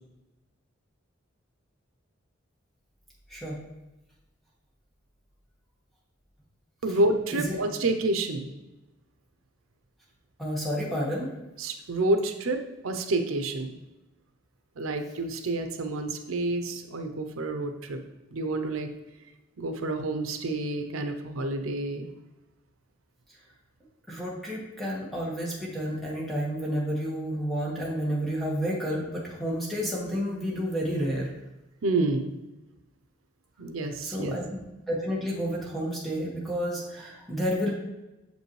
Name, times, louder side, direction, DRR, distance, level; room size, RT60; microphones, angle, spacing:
voice 1, 6.8-8.5 11.6-13.8 14.8-18.0 18.3-18.9 19.6-22.1 31.8-32.3 33.6-34.3, right 2 dB, 90° right, 7 dB, 0.6 m, -28 dB
voice 2, 10.4-11.3 24.1-31.3 34.0-37.7, equal, ahead, -5 dB, 1.4 m, -30 dB
6.8 x 5.3 x 3.1 m, 1.0 s
head